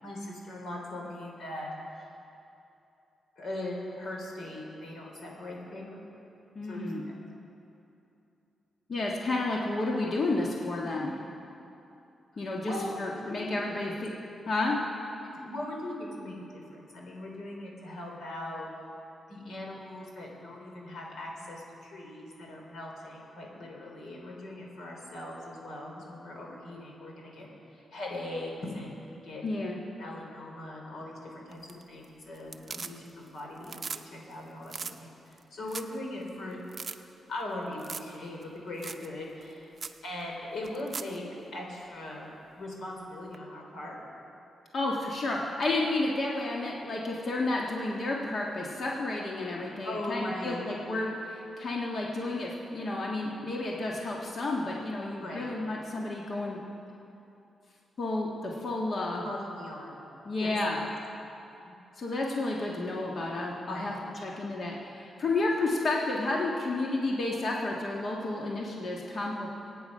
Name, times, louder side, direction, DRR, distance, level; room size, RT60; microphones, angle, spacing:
voice 1, 0.0-1.7 1.9-2.1 3.4-6.0 6.7-6.8 12.6-13.0 13.3-13.6 13.8-14.0 15.2-18.7 19.3-29.4 30.0-36.6 37.3-39.7 40.0-41.2 41.5-44.1 49.6-50.7 55.2-55.6 59.1-59.9 60.4-60.9 61.6-61.7 63.7-64.0, left 1 dB, 70° left, -1 dB, 3.6 m, -40 dB
voice 2, 6.5-7.0 8.9-11.2 12.4-14.1 14.4-14.8 29.4-29.8 44.7-56.6 58.0-59.2 60.2-60.8 62.0-69.5, left 2 dB, 45° left, -2 dB, 1.6 m, -31 dB
sound 1, 31.5-32.0 32.3-33.3 33.6-34.0 34.3-34.4 34.7-34.9 35.4-35.5 35.7-36.0 36.3-36.4 36.7-37.0 37.8-38.1 38.4-38.5 38.8-39.1 39.4-39.5 39.8-40.0 40.6-41.2 43.3-43.4, right 5 dB, 40° right, 0.6 m, -39 dB
25.0 x 9.3 x 5.5 m, 2.9 s
cardioid pair, 120°, 0 cm